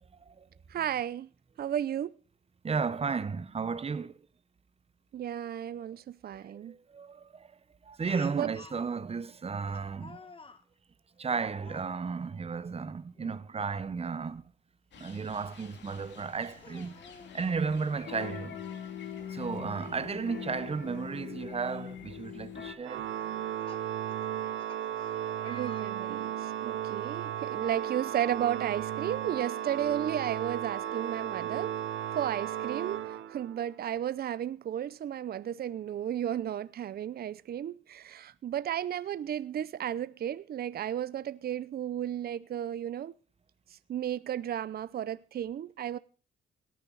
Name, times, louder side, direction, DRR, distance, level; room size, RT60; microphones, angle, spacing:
voice 1, 0.7-1.3 1.6-2.1 5.1-6.7 8.3-8.5 25.4-31.7 32.2-43.1 43.9-46.0, right 10 dB, 50° right, 0.7 m, -33 dB
voice 2, 2.6-4.1 6.7-7.3 7.9-10.2 11.2-14.4 15.0-17.0 17.3-18.6 19.3-23.1 27.2-27.3, right 5 dB, 30° right, 1.0 m, -34 dB
Speech, 8.1-8.8 9.7-10.6 11.6-11.9 13.1-13.4 13.8-13.9 15.6-15.7 16.5-17.4 18.7-18.8 19.1-19.2 21.1-21.2 21.8-22.1 23.2-26.5, left 4 dB, 25° left, 1.4 m, -52 dB
sound 1, 14.9-22.7, left 8 dB, 65° left, 2.6 m, -43 dB
Organ, 22.8-33.7, right 11 dB, 80° right, 1.0 m, -35 dB
17.5 x 10.5 x 4.1 m
cardioid pair, 90°, 20 cm